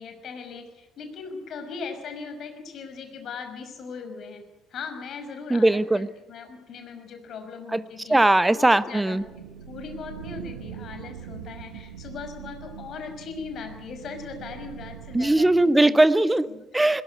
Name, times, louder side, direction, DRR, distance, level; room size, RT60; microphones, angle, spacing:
voice 1, 0.0-4.4 4.7-8.2 8.5-16.1 16.5-16.6, left 5 dB, 50° left, 6 dB, 5.5 m, -39 dB
voice 2, 5.5-6.1 7.7-7.8 8.1-9.2 15.1-16.5 16.7-17.0, right 2 dB, 10° right, 16 dB, 1.0 m, -19 dB
sound 1, 9.2-15.7, right 9 dB, 75° right, 1.4 m, -42 dB
21.5 x 19.0 x 9.5 m, 1.0 s
figure-of-eight pair, 55°, 0 cm